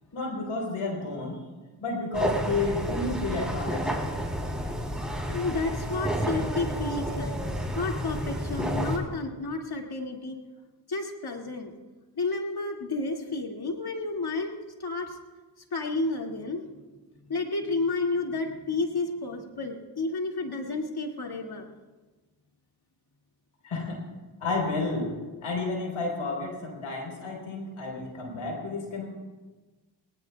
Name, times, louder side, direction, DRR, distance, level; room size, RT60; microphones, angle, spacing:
voice 1, 0.1-1.4 1.8-3.9 23.6-24.0 24.4-25.1 25.4-29.1, left 3 dB, 80° left, 1 dB, 4.1 m, -31 dB
sound 1, 2.1-9.0, equal, ahead, 3.4 m, -30 dB
voice 2, 5.3-7.4 7.8-10.4 10.9-11.7 12.2-15.2 15.7-16.7 17.3-21.6, left 3 dB, 50° left, 2 dB, 2.4 m, -31 dB
19.5 x 19.5 x 2.3 m, 1.2 s
supercardioid pair, 45°, 47 cm